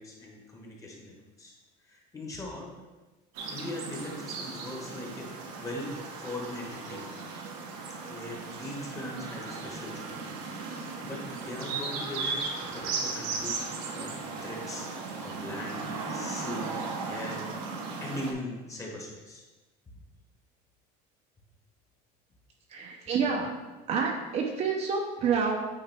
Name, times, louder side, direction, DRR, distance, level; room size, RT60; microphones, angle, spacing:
voice 1, 0.0-1.5 1.8-2.7 3.5-7.1 8.0-10.1 10.5-16.8 17.1-17.4 18.0-19.4, left 1 dB, 15° left, -1 dB, 1.2 m, -40 dB
sound 1, 3.3-18.3, right 4 dB, 90° right, 1.3 m, -36 dB
voice 2, 22.7-23.5 23.9-25.6, right 5 dB, 35° right, 1 dB, 0.7 m, -28 dB
8.8 x 4.9 x 3.4 m, 1.2 s
cardioid pair, 175°, 20 cm